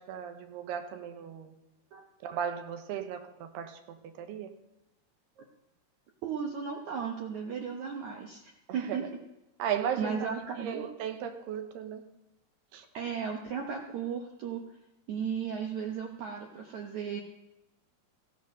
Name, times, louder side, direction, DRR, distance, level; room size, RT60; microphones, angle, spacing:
voice 1, 0.0-1.5 2.2-4.5 8.7-9.0 9.6-10.3 10.6-12.0 12.7-12.8, right 8 dB, 85° right, 6 dB, 3.1 m, -36 dB
voice 2, 6.2-9.0 10.0-10.9 12.9-14.6 15.1-17.2, right 6 dB, 65° right, 2 dB, 2.0 m, -35 dB
15.5 x 9.2 x 6.5 m, 0.95 s
omnidirectional pair, 4.5 m